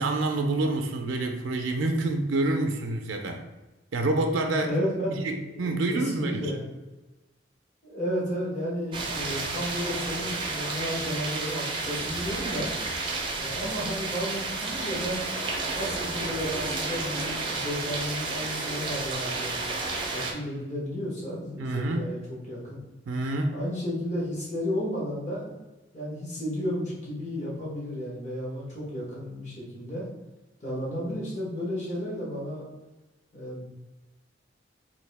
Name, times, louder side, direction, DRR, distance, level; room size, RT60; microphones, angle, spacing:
voice 1, 0.0-3.4 3.9-4.7 5.1-6.5 21.6-22.1 23.1-23.6, right 2 dB, 85° right, 4 dB, 0.4 m, -27 dB
voice 2, 4.6-6.7 7.8-12.7 13.3-15.3 15.7-19.6 20.1-22.8 23.5-25.5 25.9-30.1 30.6-32.6 33.3-33.6, equal, 40° left, -5 dB, 1.2 m, -33 dB
sound 1, 8.9-20.3, right 3 dB, 25° right, 0.5 m, -31 dB
3.5 x 2.7 x 3.3 m, 1.1 s
head